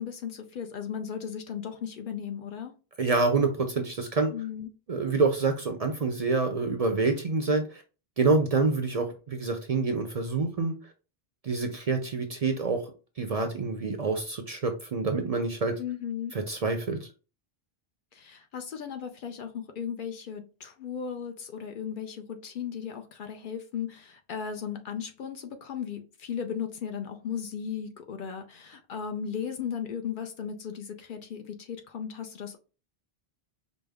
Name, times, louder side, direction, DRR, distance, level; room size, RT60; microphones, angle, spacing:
voice 1, 0.0-2.7 4.3-4.7 15.8-16.3 18.1-32.6, left 7 dB, 60° left, 0.7 m, -36 dB
voice 2, 3.0-4.3 4.9-7.8 8.2-10.7 11.4-12.8 13.2-15.7 16.3-17.1, right 3 dB, 50° right, 0.5 m, -27 dB
5.1 x 2.0 x 3.4 m
omnidirectional pair, 1.0 m